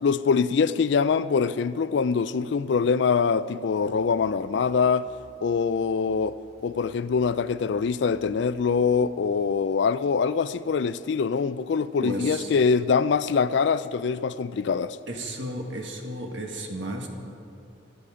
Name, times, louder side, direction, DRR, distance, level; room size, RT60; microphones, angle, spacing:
voice 1, 0.0-5.1 5.4-6.4 6.6-15.0, left 5 dB, 60° left, 0.4 m, -24 dB
sound 1, 3.8-8.8, equal, 5° left, 3.3 m, -56 dB
voice 2, 12.0-12.5 15.1-17.1, right 1 dB, 65° right, 1.7 m, -33 dB
23.5 x 8.5 x 5.0 m
head